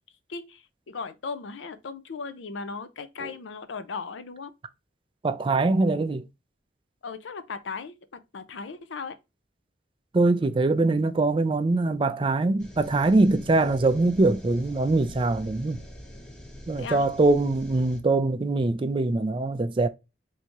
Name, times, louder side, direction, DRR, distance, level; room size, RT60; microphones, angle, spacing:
voice 1, 0.3-4.5 7.0-9.2 16.8-17.1, left 4 dB, 85° left, 0.5 m, -37 dB
voice 2, 5.2-6.2 10.1-15.8 16.7-19.9, right 2 dB, 30° right, 0.4 m, -23 dB
sound 1, 12.6-18.0, left 1 dB, 5° left, 0.8 m, -44 dB
3.5 x 2.7 x 2.9 m
head